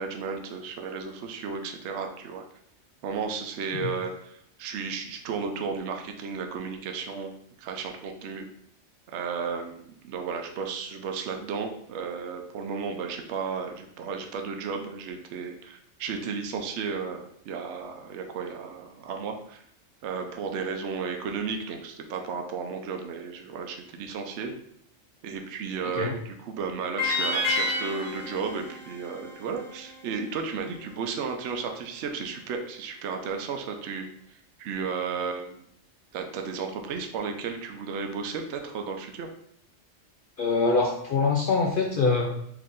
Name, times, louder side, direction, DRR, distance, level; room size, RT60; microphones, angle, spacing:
voice 1, 0.0-2.4 3.0-7.3 7.6-8.5 9.1-19.6 20.0-24.5 25.2-35.6 36.1-39.3, right 5 dB, 70° right, 4 dB, 0.9 m, -34 dB
voice 2, 25.8-26.1 40.4-42.3, left 4 dB, 60° left, 0 dB, 0.5 m, -24 dB
sound 1, 27.0-30.1, left 2 dB, 25° left, 1.4 m, -30 dB
4.7 x 2.6 x 3.6 m, 0.71 s
omnidirectional pair, 1.3 m